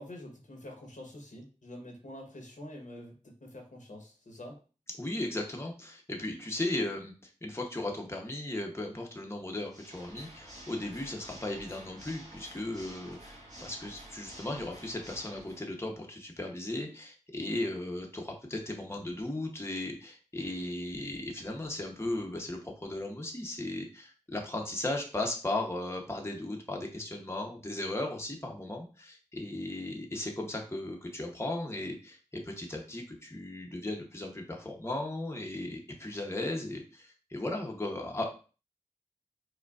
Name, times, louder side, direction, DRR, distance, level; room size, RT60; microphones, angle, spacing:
voice 1, 0.0-4.6, left 1 dB, 75° left, 1 dB, 0.9 m, -46 dB
voice 2, 5.0-7.1 7.4-32.2 32.4-38.3, left 1 dB, 20° left, 1 dB, 0.8 m, -36 dB
Water / Mechanisms, 9.7-15.7, right 1 dB, 65° right, 1.5 m, -50 dB
4.8 x 2.2 x 2.3 m, 0.36 s
wide cardioid pair, 40°, 13 cm